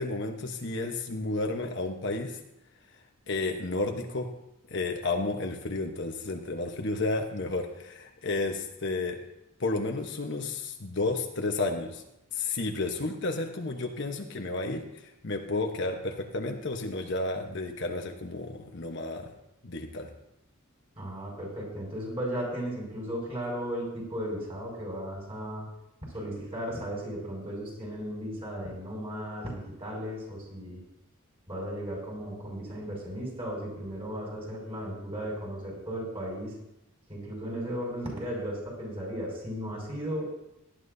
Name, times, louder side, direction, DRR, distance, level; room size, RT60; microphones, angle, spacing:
voice 1, 0.0-2.4 3.3-4.3 4.7-9.2 9.6-12.0 12.3-19.3 19.6-20.1, left 2 dB, 55° left, 3 dB, 1.1 m, -32 dB
voice 2, 21.0-25.7 26.1-30.8 31.5-36.5 37.1-40.3, equal, 25° right, -2 dB, 5.6 m, -35 dB
18.0 x 11.5 x 2.7 m, 0.87 s
head